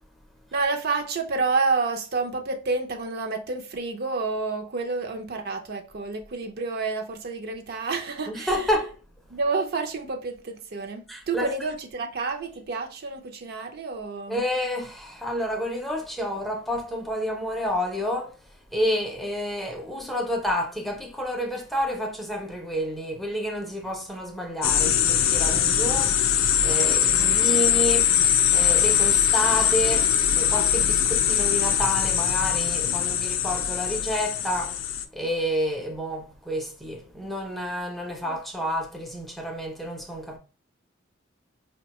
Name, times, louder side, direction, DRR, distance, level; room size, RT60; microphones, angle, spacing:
voice 1, 0.5-8.6 9.3-14.4 32.9-33.2 38.1-38.4, right 4 dB, 50° right, 0.5 m, -29 dB
voice 2, 8.3-8.9 11.1-11.5 14.3-18.4 18.7-34.8 35.1-40.4, equal, ahead, 0.5 m, -29 dB
sound 1, 24.6-35.0, left 9 dB, 80° left, 0.4 m, -22 dB
4.7 x 2.2 x 2.8 m
head